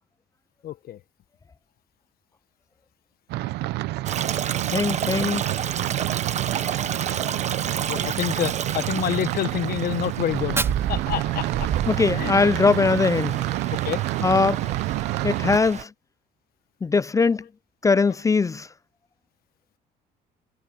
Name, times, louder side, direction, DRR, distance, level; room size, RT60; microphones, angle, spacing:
voice 1, 0.6-1.0 7.9-11.7 12.1-12.4 13.7-14.0 14.5-14.7 15.7-15.8, left 11 dB, 60° left, 1.3 m, -28 dB
sound 1, 3.3-15.6, right 18 dB, 85° right, 0.7 m, -28 dB
Stream, 4.1-15.8, right 8 dB, 45° right, 1.2 m, -31 dB
voice 2, 4.7-5.4 11.9-13.4 14.2-14.6 15.2-15.9 16.8-17.4 17.8-18.7, left 4 dB, 20° left, 0.4 m, -21 dB
Fire, 10.2-12.3, right 2 dB, 15° right, 3.7 m, -34 dB
cardioid pair, 110°, 17 cm